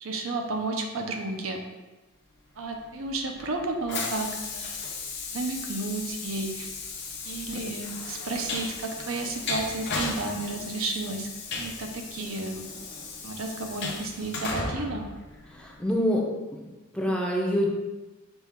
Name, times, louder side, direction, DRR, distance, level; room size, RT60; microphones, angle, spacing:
voice 1, 0.0-1.6 2.6-4.8 5.3-6.7 7.2-11.3 11.6-12.6 13.2-15.1, right 2 dB, 80° right, 3 dB, 0.6 m, -32 dB
Train, 2.7-15.9, left 3 dB, 60° left, 0.7 m, -36 dB
voice 2, 15.5-16.3 16.9-17.7, equal, 5° left, -2 dB, 0.6 m, -25 dB
6.0 x 2.4 x 3.5 m, 1.1 s
head